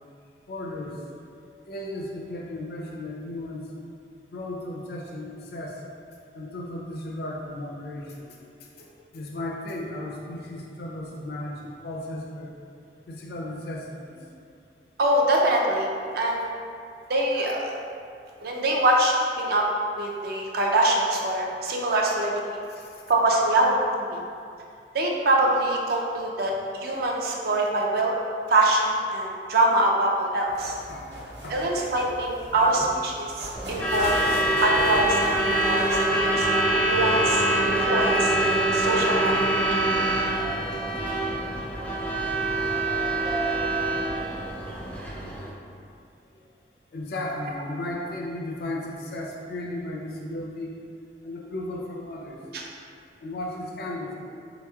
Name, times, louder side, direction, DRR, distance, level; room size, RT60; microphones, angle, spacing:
voice 1, 0.5-1.0 1.7-3.7 4.3-5.8 6.3-8.4 9.1-12.6 13.1-14.1 22.7-23.0 30.9-31.6 32.6-33.0 33.8-33.9 40.7-40.8 46.3-46.5 46.9-50.7 51.2-52.4 53.2-54.1, left 1 dB, 60° left, -1 dB, 0.5 m, -35 dB
voice 2, 15.0-15.9 16.1-16.5 17.1-17.7 18.4-19.7 20.0-22.6 23.1-24.2 24.9-26.5 26.8-28.1 28.5-30.8 31.5-35.4 35.6-39.9 52.5-52.6, right 1 dB, 60° right, -1 dB, 0.4 m, -24 dB
sound 1, 30.4-36.5, equal, 80° right, 1.1 m, -38 dB
Truck / Alarm, 33.5-45.5, right 1 dB, 10° left, 0.5 m, -25 dB
4.1 x 2.9 x 2.3 m, 2.4 s
head